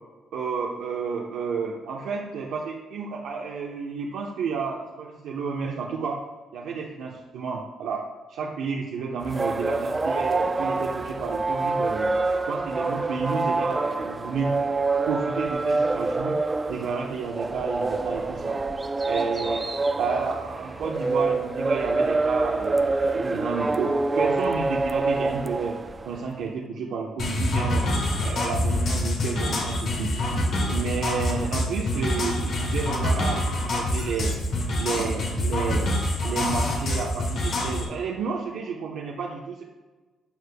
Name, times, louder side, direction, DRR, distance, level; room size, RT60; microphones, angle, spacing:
voice 1, 0.3-6.2 6.5-12.1 12.5-14.6 15.1-16.4 16.7-18.6 19.0-19.6 20.0-27.9 28.2-30.2 30.7-34.4 34.8-35.9 36.2-39.6, right 5 dB, 80° right, -2 dB, 0.8 m, -31 dB
sound 1, 9.2-26.2, right 3 dB, 25° right, 0.4 m, -26 dB
sound 2, 27.2-37.9, left 1 dB, 65° left, 1.8 m, -26 dB
11.5 x 6.5 x 2.2 m, 1.3 s
cardioid pair, 90°, 0 cm